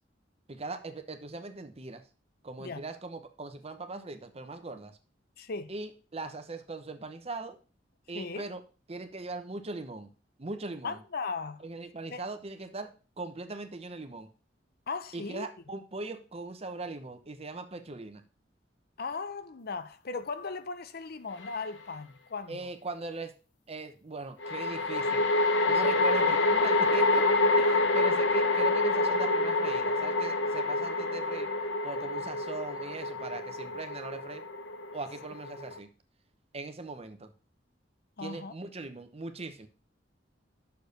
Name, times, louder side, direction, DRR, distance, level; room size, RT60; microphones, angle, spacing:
voice 1, 0.5-2.0 2.4-5.0 5.7-7.6 8.1-8.6 8.9-10.1 10.4-11.0 11.6-14.3 15.1-18.2 22.5-23.3 23.7-25.3 25.7-27.3 27.6-31.5 31.8-34.4 34.9-35.9 36.5-37.3 38.2-39.7, right 3 dB, 35° right, 0.9 m, -40 dB
voice 2, 5.4-5.7 8.1-8.4 10.8-11.6 12.1-12.2 14.9-15.5 19.0-22.7 38.2-38.5, left 4 dB, 55° left, 0.6 m, -37 dB
sound 1, 21.4-21.6 24.4-35.8, left 2 dB, 90° left, 1.0 m, -27 dB
6.8 x 4.7 x 6.5 m
head